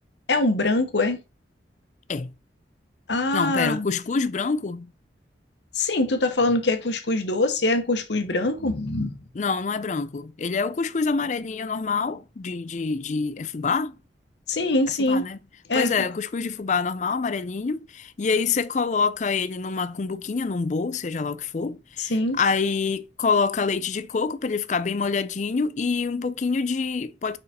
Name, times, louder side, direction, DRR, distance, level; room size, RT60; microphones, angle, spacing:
voice 1, 0.3-1.2 3.1-3.9 5.7-9.2 14.5-15.3 15.7-15.9 22.0-22.4, left 2 dB, 75° left, 1.1 m, -23 dB
voice 2, 3.3-4.9 9.3-13.9 15.0-15.4 15.7-27.4, left 4 dB, 40° left, 0.4 m, -26 dB
4.9 x 4.6 x 4.2 m
head